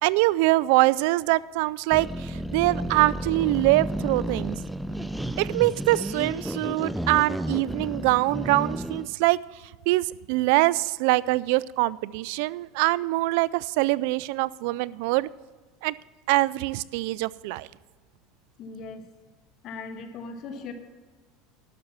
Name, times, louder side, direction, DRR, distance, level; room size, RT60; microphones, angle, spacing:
voice 1, 0.0-4.6 5.4-9.4 9.9-15.3 15.8-15.9 16.3-17.7, right 19 dB, 70° right, 20 dB, 0.3 m, -24 dB
sound 1, 1.9-9.1, right 1 dB, ahead, 0.4 m, -32 dB
voice 2, 18.6-19.1 19.6-20.7, left 4 dB, 50° left, 6 dB, 1.6 m, -38 dB
12.0 x 6.7 x 7.2 m, 1.4 s
supercardioid pair, 125°, 0 cm